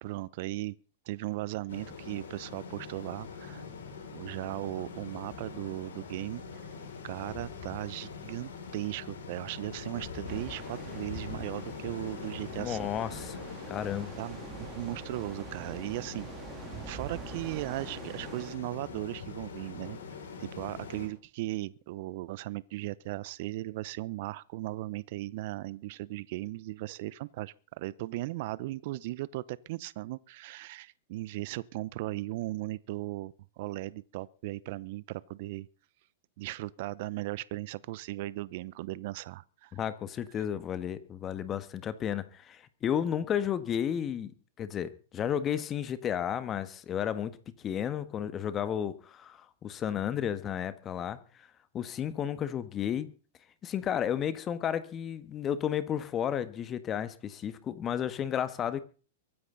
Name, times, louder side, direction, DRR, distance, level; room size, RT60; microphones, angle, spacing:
voice 1, 0.0-0.7 1.1-3.6 4.1-6.4 7.0-12.9 14.2-16.3 16.9-20.0 20.4-35.7 36.4-39.7, right 18 dB, 55° right, 0.7 m, -37 dB
sound 1, 1.7-21.1, left 5 dB, 70° left, 5.7 m, -43 dB
sound 2, 10.3-18.6, right 6 dB, 20° right, 3.2 m, -46 dB
voice 2, 12.6-13.4 13.7-14.1 39.7-44.3 44.6-51.5 51.7-53.1 53.6-58.8, left 9 dB, 25° left, 1.5 m, -32 dB
23.5 x 9.8 x 4.0 m
hypercardioid pair, 110°, 0 cm